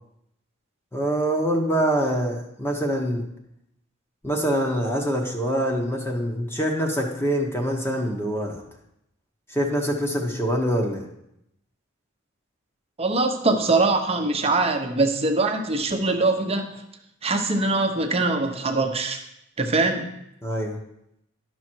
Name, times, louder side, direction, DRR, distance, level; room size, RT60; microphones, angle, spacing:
voice 1, 0.9-3.3 4.2-8.6 9.5-11.1 20.4-20.8, equal, 10° left, 1 dB, 1.0 m, -25 dB
voice 2, 13.0-16.8 17.2-19.2 19.6-20.1, right 3 dB, 30° right, 5 dB, 0.9 m, -23 dB
11.5 x 6.2 x 4.5 m, 0.80 s
head